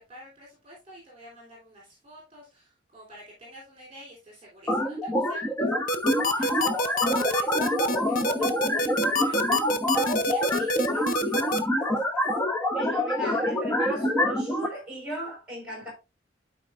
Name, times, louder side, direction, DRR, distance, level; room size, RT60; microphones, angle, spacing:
voice 1, 0.0-5.4 5.9-12.2, equal, 30° right, 3.4 m, -49 dB
sound 1, 4.7-14.7, left 1 dB, 10° left, 1.0 m, -26 dB
sound 2, 5.9-11.6, left 1 dB, 45° left, 0.7 m, -26 dB
voice 2, 12.7-15.9, equal, 5° right, 4.6 m, -37 dB
12.0 x 4.7 x 2.5 m
head